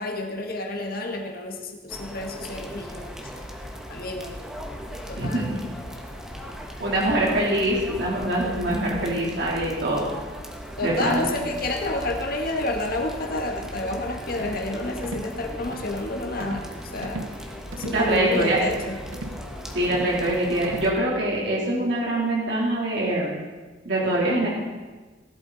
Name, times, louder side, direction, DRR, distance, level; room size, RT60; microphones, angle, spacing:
voice 1, 0.0-3.1 3.9-4.3 5.1-5.5 10.8-17.2 17.8-19.0, left 2 dB, 50° left, 2 dB, 1.7 m, -29 dB
sound 1, 1.9-20.9, equal, 5° right, 1.4 m, -38 dB
voice 2, 5.2-5.7 6.8-10.0 10.8-11.3 17.9-18.6 19.7-23.3 23.9-24.5, right 1 dB, 60° right, -4 dB, 3.5 m, -24 dB
sound 2, 14.4-14.7 15.0-15.3 15.7-16.0 16.4-16.7 17.0-17.4 17.7-18.0 18.4-18.7 19.1-19.4 19.8-20.2 20.6-21.0, right 2 dB, 85° right, 1.0 m, -37 dB
18.0 x 12.5 x 4.1 m, 1.3 s
head